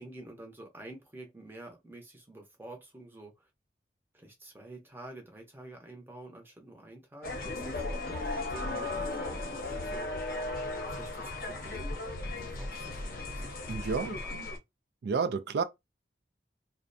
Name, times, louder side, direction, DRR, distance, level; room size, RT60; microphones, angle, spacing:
voice 1, 0.0-3.5 4.1-10.1 10.9-12.0 12.2-14.4, right 1 dB, 10° right, 0.6 m, -48 dB
sound 1, 7.2-14.6, left 2 dB, 55° left, 0.7 m, -36 dB
voice 2, 13.7-14.2 15.0-15.6, right 5 dB, 70° right, 0.3 m, -30 dB
2.5 x 2.1 x 2.5 m
head